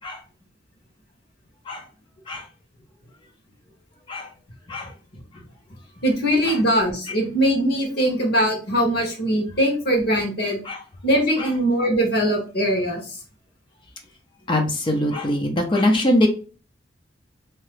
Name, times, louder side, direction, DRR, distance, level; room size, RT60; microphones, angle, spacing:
voice 1, 6.0-10.6 11.0-13.2, equal, 60° left, 0 dB, 1.3 m, -21 dB
voice 2, 14.5-16.3, left 1 dB, 30° left, 3 dB, 0.5 m, -22 dB
2.8 x 2.2 x 3.2 m, 0.35 s
head